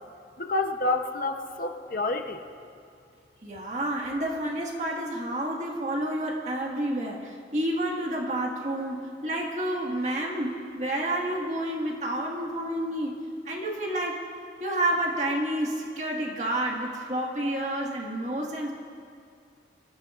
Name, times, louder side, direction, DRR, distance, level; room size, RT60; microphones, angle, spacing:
voice 1, 0.4-2.4, left 2 dB, 50° left, 5 dB, 0.8 m, -28 dB
voice 2, 3.4-13.1 13.5-14.2 14.6-18.7, right 1 dB, 40° right, -1 dB, 1.7 m, -29 dB
26.0 x 14.0 x 2.5 m, 2.4 s
head